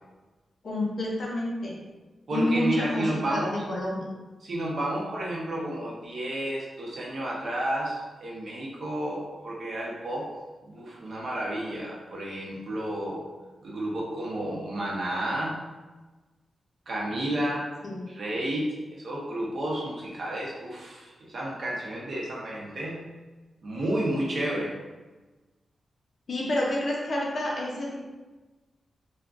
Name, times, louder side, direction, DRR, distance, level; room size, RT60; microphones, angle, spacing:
voice 1, 0.6-1.7 2.3-4.1 17.8-18.1 26.3-28.0, left 1 dB, 45° left, -3 dB, 0.6 m, -29 dB
voice 2, 2.3-3.6 4.4-10.3 10.6-13.3 13.6-15.6 16.9-17.7 18.1-23.0 23.6-24.8, right 1 dB, 50° right, -4 dB, 0.7 m, -31 dB
3.5 x 2.1 x 2.4 m, 1.2 s
wide cardioid pair, 175°, 0 cm